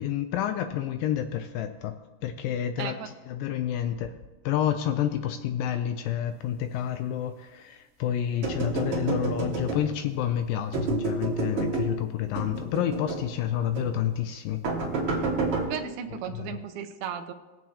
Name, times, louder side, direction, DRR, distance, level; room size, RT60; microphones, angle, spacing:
voice 1, 0.0-1.9 2.2-4.1 4.5-14.6 16.3-16.6, left 10 dB, 90° left, 8 dB, 1.9 m, -29 dB
voice 2, 2.8-3.1 15.7-17.3, right 8 dB, 80° right, 6 dB, 2.8 m, -35 dB
sound 1, 8.4-10.1 10.7-11.9 12.3-13.3 13.7-13.9 14.6-15.7, right 3 dB, 45° right, 2.3 m, -29 dB
21.0 x 7.6 x 2.8 m, 1.2 s
omnidirectional pair, 4.5 m